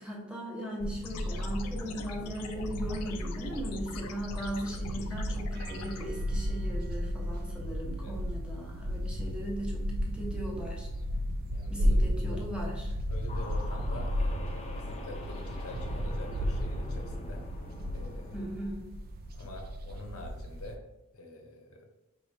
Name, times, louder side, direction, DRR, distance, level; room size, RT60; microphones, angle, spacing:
voice 1, 0.0-10.9 11.7-12.9 18.3-18.9, equal, 5° right, -3 dB, 0.9 m, -38 dB
sound 1, 0.8-20.8, equal, 45° right, 0.4 m, -34 dB
sound 2, 1.0-6.0, left 5 dB, 90° left, 0.4 m, -45 dB
voice 2, 11.5-12.4 13.1-17.5 17.9-18.3 19.3-20.8 21.1-21.9, left 2 dB, 70° left, 3 dB, 0.8 m, -46 dB
sound 3, 13.3-18.5, left 2 dB, 30° left, 0.6 m, -45 dB
5.0 x 3.2 x 2.6 m, 0.94 s
head